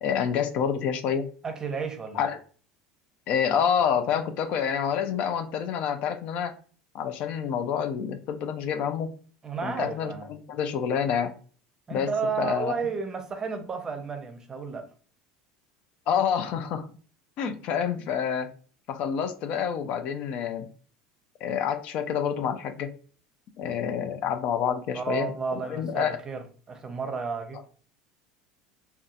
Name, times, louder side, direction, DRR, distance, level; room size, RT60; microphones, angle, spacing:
voice 1, 0.0-1.3 2.1-2.4 3.3-6.5 6.9-9.1 9.6-11.3 11.9-12.1 12.4-12.7 16.1-16.9 17.4-18.5 18.9-20.7 21.4-22.9 23.6-26.2, left 8 dB, 60° left, 0.4 m, -28 dB
voice 2, 1.4-2.3 9.4-10.3 11.9-14.9 24.9-27.7, right 5 dB, 25° right, 0.6 m, -32 dB
2.7 x 2.3 x 2.4 m
supercardioid pair, 90°, 2 cm